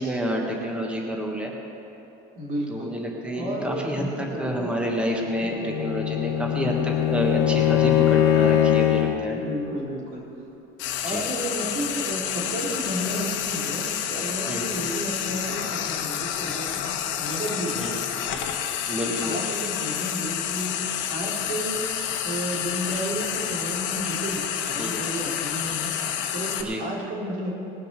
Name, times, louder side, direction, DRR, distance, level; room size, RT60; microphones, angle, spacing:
voice 1, 0.0-1.5 2.7-9.4 11.1-11.2 14.5-14.8 17.7-18.0 18.9-19.4 24.7-25.0 26.6-26.8, equal, 5° right, 0 dB, 1.4 m, -29 dB
voice 2, 2.3-2.9 3.3-5.0 5.4-5.5 9.3-10.2 11.0-16.9 17.2-18.5 19.0-20.8 21.1-25.9 26.3-27.5, right 1 dB, 75° right, -3 dB, 3.4 m, -32 dB
Bowed string instrument, 5.4-9.3, left 11 dB, 55° left, 1.3 m, -21 dB
Frying (food), 10.8-26.6, left 9 dB, 70° left, 1.1 m, -29 dB
19.5 x 6.5 x 6.7 m, 2.9 s
cardioid pair, 115°, 20 cm